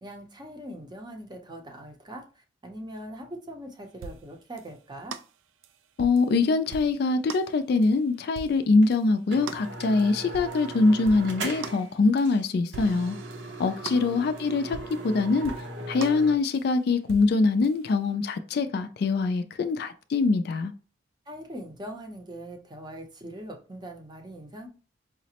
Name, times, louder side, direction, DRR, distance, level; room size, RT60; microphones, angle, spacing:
voice 1, 0.0-5.2 13.8-14.2 21.3-24.7, equal, 25° right, 0.6 m, -41 dB
sound 1, 4.0-4.3 4.6-4.7 5.1-5.3 5.6-6.3 6.7-7.0 7.3-7.5 7.8-7.9 8.4-8.6 8.9-9.0 9.5-9.7 10.0-10.7 11.1-11.3 11.6-11.9 12.2-12.4 12.7-15.1 15.4-15.7 16.0-16.3 16.5-16.7 17.1-17.4 17.6-17.8, right 5 dB, 85° right, 0.3 m, -42 dB
voice 2, 6.0-13.2 13.6-14.8 15.0-15.5 15.9-20.7, left 3 dB, 55° left, 0.3 m, -23 dB
sound 2, 8.8-8.9 9.3-11.9 12.2-12.4 12.7-16.4, right 2 dB, 70° right, 0.7 m, -38 dB
4.8 x 2.0 x 2.8 m
head